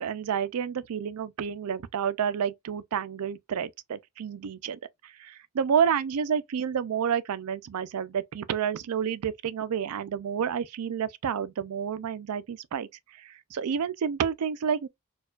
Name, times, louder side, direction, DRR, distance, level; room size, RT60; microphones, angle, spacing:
voice 1, 0.0-4.8 5.2-12.9 13.5-14.9, right 7 dB, 85° right, 0.4 m, -29 dB
4.2 x 2.3 x 2.3 m
head